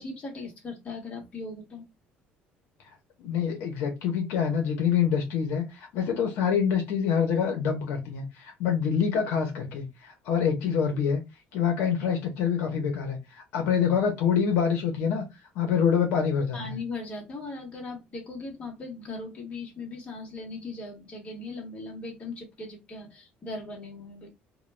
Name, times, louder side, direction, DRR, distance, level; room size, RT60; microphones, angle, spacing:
voice 1, 0.0-1.8 16.5-24.3, left 3 dB, 30° left, 1.1 m, -38 dB
voice 2, 3.2-11.2 11.5-15.2 15.5-16.8, left 7 dB, 75° left, 0.8 m, -26 dB
2.3 x 2.3 x 3.2 m
cardioid pair, 155°, 4 cm